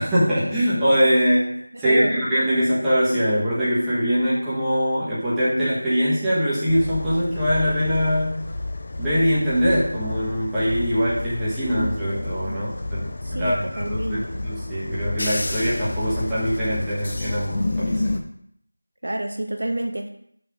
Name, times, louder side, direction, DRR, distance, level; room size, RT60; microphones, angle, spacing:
voice 1, 0.0-8.3 9.0-18.0, equal, 5° right, -13 dB, 1.4 m, -22 dB
voice 2, 1.7-2.3 12.5-12.6 13.2-14.4 19.0-20.1, right 1 dB, 60° right, 4 dB, 0.9 m, -28 dB
sound 1, 6.7-18.2, left 2 dB, 35° left, 0.7 m, -30 dB
6.6 x 6.1 x 3.6 m, 0.70 s
figure-of-eight pair, 175°, 0 cm